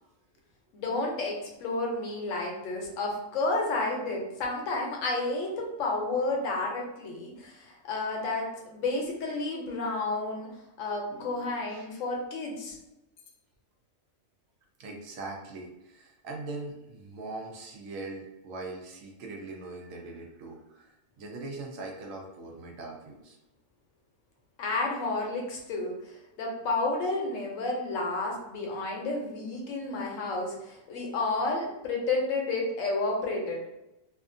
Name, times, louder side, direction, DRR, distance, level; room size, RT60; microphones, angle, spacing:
voice 1, 0.7-10.5 10.8-12.8 24.6-33.6, left 2 dB, 75° left, 0 dB, 1.0 m, -31 dB
voice 2, 11.1-11.9 14.8-20.9 21.2-23.4, right 3 dB, 80° right, 0 dB, 1.0 m, -41 dB
2.7 x 2.4 x 2.5 m, 0.93 s
omnidirectional pair, 1.4 m